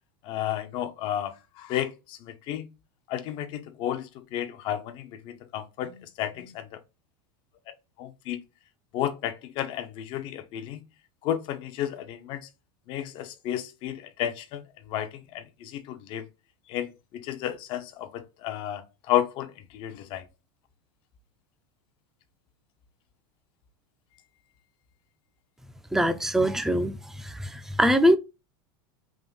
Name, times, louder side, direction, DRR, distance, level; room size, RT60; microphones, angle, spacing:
voice 1, 0.2-2.7 3.1-6.7 7.7-8.4 8.9-10.8 11.2-12.5 12.9-14.6 14.9-15.1 15.3-16.2 16.7-18.8 19.1-20.2, left 11 dB, 45° left, 0.6 m, -32 dB
voice 2, 25.9-26.9 27.8-28.2, equal, 5° right, 0.4 m, -21 dB
3.6 x 2.6 x 3.9 m
supercardioid pair, 130°, 12 cm